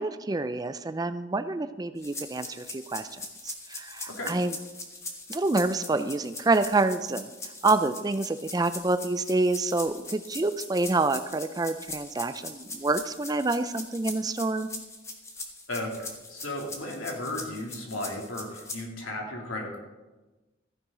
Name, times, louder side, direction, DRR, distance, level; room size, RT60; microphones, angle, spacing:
voice 1, 0.0-4.5 5.3-7.3 7.6-14.7, right 3 dB, 20° right, 11 dB, 0.4 m, -27 dB
sound 1, 2.0-18.8, left 2 dB, 15° left, 1.2 m, -41 dB
voice 2, 15.7-19.8, left 1 dB, 85° left, 0 dB, 2.8 m, -35 dB
14.5 x 10.0 x 3.8 m, 1.2 s
head